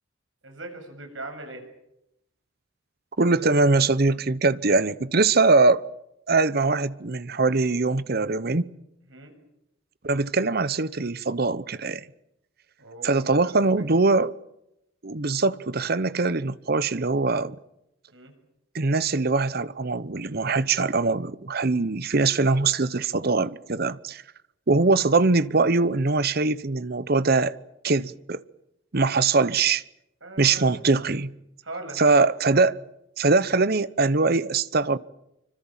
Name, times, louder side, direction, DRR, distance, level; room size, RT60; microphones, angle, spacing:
voice 1, 0.4-1.7 9.1-9.3 12.8-14.0 18.1-18.3 30.2-30.7 31.6-32.1, right 2 dB, 75° right, 7.1 m, -40 dB
voice 2, 3.2-5.8 6.3-8.7 10.0-12.0 13.0-14.3 15.0-17.6 18.7-24.2 24.7-27.5 27.8-28.4 28.9-29.8 30.4-31.3 32.0-32.8 33.2-35.0, right 3 dB, 50° right, 0.9 m, -22 dB
27.0 x 25.0 x 7.4 m
head